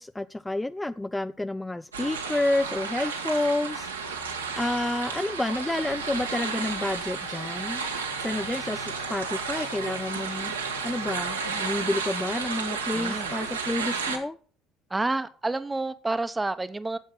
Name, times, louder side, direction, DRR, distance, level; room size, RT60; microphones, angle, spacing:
voice 1, 0.0-3.9 4.2-7.8 8.2-10.5 10.8-14.4, left 2 dB, 10° left, 13 dB, 0.4 m, -29 dB
sound 1, 1.9-14.2, right 5 dB, 85° right, 1.7 m, -32 dB
sound 2, 5.9-12.3, left 3 dB, 55° left, 4.6 m, -48 dB
voice 2, 12.9-13.3 14.9-17.0, right 2 dB, 15° right, 13 dB, 1.0 m, -29 dB
10.5 x 7.8 x 5.8 m, 0.43 s
figure-of-eight pair, 60°, 0 cm